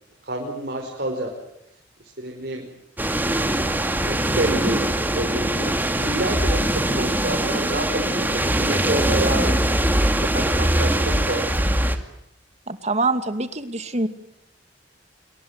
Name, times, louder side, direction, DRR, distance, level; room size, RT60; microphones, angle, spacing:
voice 1, 0.2-1.3 2.0-2.7 3.3-3.7 4.0-4.9 5.1-9.8 10.2-11.5, right 1 dB, 55° right, 1 dB, 5.4 m, -28 dB
sound 1, 3.0-12.0, right 1 dB, 10° right, 2.3 m, -22 dB
voice 2, 12.7-14.1, right 3 dB, 35° right, 9 dB, 2.4 m, -24 dB
27.5 x 24.0 x 8.2 m, 0.80 s
head